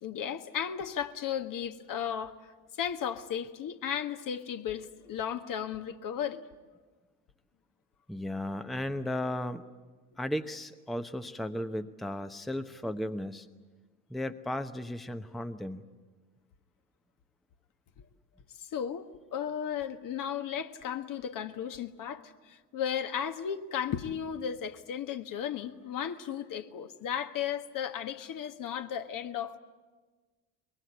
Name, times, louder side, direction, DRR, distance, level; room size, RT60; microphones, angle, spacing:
voice 1, 0.0-2.4 2.8-6.4 18.7-29.6, left 8 dB, 45° left, 1.5 m, -35 dB
voice 2, 8.1-9.6 10.2-13.5 14.1-15.8, left 1 dB, ahead, 1.0 m, -35 dB
23.5 x 22.0 x 9.5 m
figure-of-eight pair, 60°, 46 cm